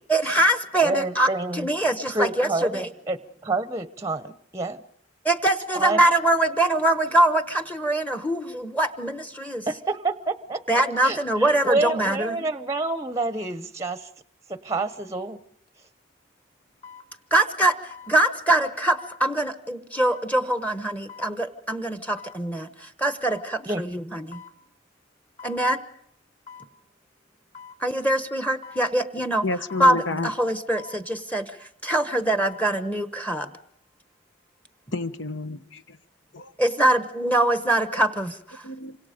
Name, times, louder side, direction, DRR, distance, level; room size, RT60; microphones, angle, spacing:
voice 1, 0.1-2.9 5.2-9.7 10.7-12.5 17.3-24.4 25.4-25.8 27.8-29.4 29.8-33.5 36.6-38.6, right 1 dB, 10° left, 1.1 m, -23 dB
voice 2, 0.8-1.7 2.1-4.8 5.7-6.0 9.7-14.1 14.5-15.4 23.7-23.8, right 2 dB, 15° right, 0.8 m, -28 dB
sound 1, 15.7-15.8 16.8-17.1 17.9-18.1 19.0-19.2 20.0-20.3 21.1-21.3 22.2-22.4 23.2-23.5 24.3-24.6 25.4-25.6 26.5-26.7 27.5-27.8 28.6-28.9 29.7-30.0 30.8-31.0 32.2-32.7 33.1-33.2, left 6 dB, 40° left, 2.9 m, -44 dB
voice 3, 29.4-30.3 34.9-36.0 36.3-36.5 38.6-39.0, left 3 dB, 65° left, 1.2 m, -30 dB
28.0 x 25.5 x 5.2 m
head